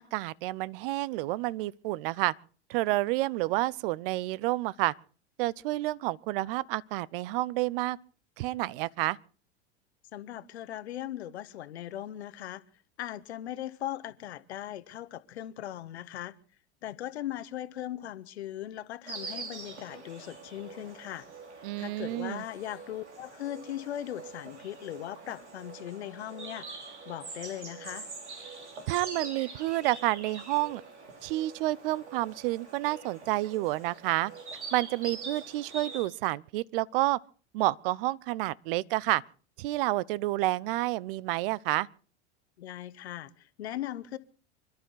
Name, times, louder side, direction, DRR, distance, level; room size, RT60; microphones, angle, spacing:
voice 1, 0.0-2.3 2.7-4.9 5.4-8.0 8.4-9.2 21.6-22.4 28.9-30.8 31.2-34.3 34.7-37.2 37.5-39.2 39.6-41.9, right 18 dB, 55° right, 0.7 m, -29 dB
voice 2, 10.1-12.6 13.0-16.3 16.8-21.3 21.8-26.7 27.1-28.1 42.6-44.2, left 12 dB, 70° left, 1.2 m, -39 dB
Insect, 19.1-36.0, right 4 dB, 80° right, 3.2 m, -44 dB
26.5 x 12.5 x 4.0 m
figure-of-eight pair, 85°, 34 cm